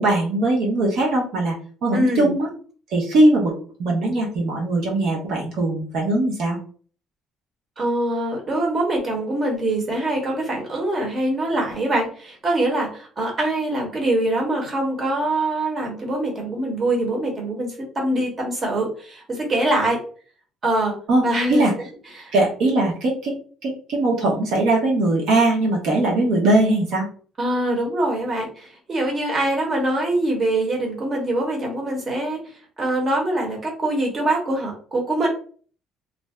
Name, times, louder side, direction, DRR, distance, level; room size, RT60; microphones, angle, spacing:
voice 1, 0.0-1.6 1.8-2.5 2.9-3.5 3.8-6.6 21.1-21.2 21.5-21.7 22.3-23.3 23.6-27.1, right 2 dB, 65° right, -2 dB, 0.8 m, -20 dB
voice 2, 1.9-2.3 7.8-20.0 20.6-21.0 21.2-21.6 22.1-22.3 27.4-32.4 32.8-35.3, right 1 dB, 30° right, -1 dB, 1.1 m, -24 dB
2.6 x 2.1 x 3.4 m, 0.43 s
cardioid pair, 130°, 0 cm